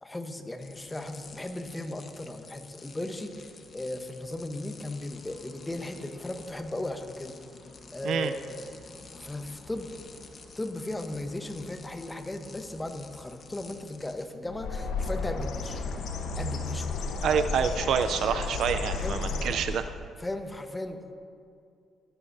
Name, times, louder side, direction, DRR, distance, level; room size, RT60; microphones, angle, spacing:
voice 1, 0.0-7.4 7.9-8.7 9.2-9.9 10.5-15.9 16.3-17.0 19.0-19.6 20.2-21.1, left 1 dB, 15° left, 7 dB, 1.0 m, -36 dB
sound 1, 0.6-14.3, left 4 dB, 45° left, 1.2 m, -49 dB
Bird, 14.5-20.0, left 3 dB, 80° left, 1.0 m, -33 dB
voice 2, 17.2-19.8, right 7 dB, 70° right, 9 dB, 0.5 m, -27 dB
19.5 x 11.0 x 2.7 m, 2.3 s
cardioid pair, 90°, 0 cm